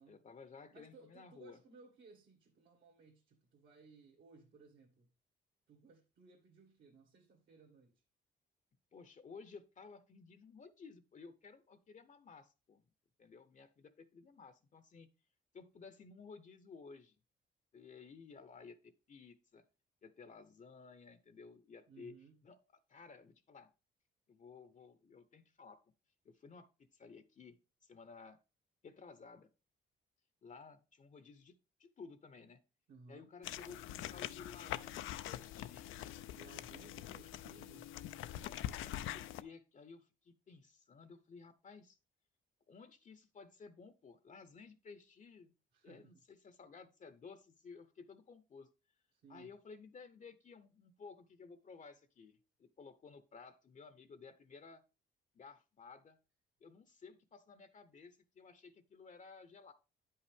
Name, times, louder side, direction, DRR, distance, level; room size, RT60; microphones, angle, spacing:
voice 1, 0.0-1.6 8.9-12.8 13.2-15.1 15.5-17.2 17.7-19.6 20.0-22.2 22.4-22.6 22.9-23.7 24.3-25.8 26.2-28.4 28.8-29.5 30.4-32.6 33.1-36.2 38.4-42.0 42.7-45.5 45.8-48.7 49.3-54.8 55.3-56.2 56.6-59.7, left 5 dB, 40° left, 0.7 m, -56 dB
voice 2, 0.7-5.1 5.7-7.9 21.9-22.3 32.9-33.3 36.3-37.9 45.7-46.1 49.2-49.5, right 4 dB, 65° right, 1.7 m, -60 dB
sound 1, 33.4-39.4, left 13 dB, 85° left, 0.4 m, -44 dB
9.3 x 5.5 x 3.4 m
cardioid pair, 90°, 20 cm